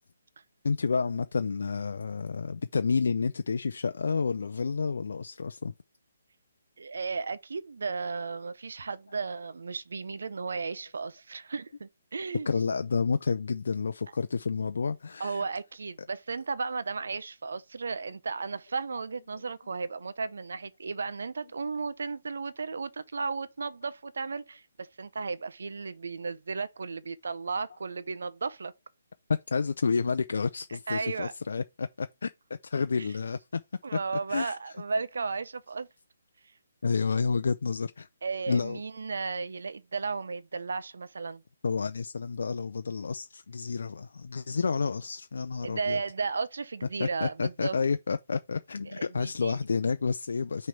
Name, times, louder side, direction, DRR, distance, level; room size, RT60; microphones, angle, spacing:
voice 1, 0.6-5.7 12.5-15.4 29.5-33.6 34.3-34.6 36.8-38.1 38.5-38.8 41.6-46.0 47.0-50.7, left 5 dB, 70° left, 0.5 m, -30 dB
voice 2, 6.8-12.5 15.2-28.7 30.9-31.3 33.0-33.1 33.8-35.9 38.2-41.4 45.6-47.8 48.9-49.6, right 4 dB, 70° right, 0.7 m, -34 dB
6.0 x 3.2 x 5.7 m
hypercardioid pair, 150°, 0 cm